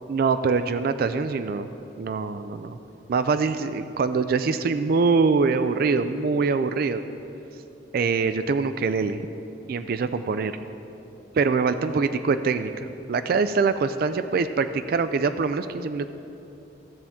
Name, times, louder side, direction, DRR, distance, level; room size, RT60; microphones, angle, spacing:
voice 1, 0.1-1.7 2.0-2.8 3.1-7.0 7.9-9.2 9.7-10.5 11.3-16.1, right 4 dB, 55° right, 10 dB, 0.3 m, -24 dB
15.5 x 7.1 x 3.5 m, 2.9 s
head